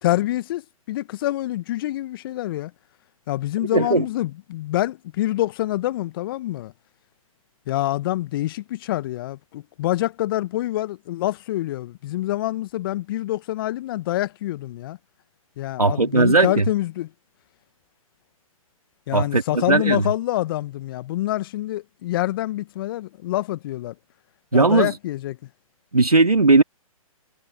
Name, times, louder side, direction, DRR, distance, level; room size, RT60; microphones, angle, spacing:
voice 1, 0.0-2.7 3.3-6.7 7.7-15.0 15.6-17.1 19.1-23.9 24.5-25.4, left 15 dB, 40° left, 1.2 m, -26 dB
voice 2, 3.7-4.0 15.8-16.7 19.1-20.0 24.5-24.9 25.9-26.6, right 3 dB, 85° right, 2.8 m, -17 dB
figure-of-eight pair, 125°, 18 cm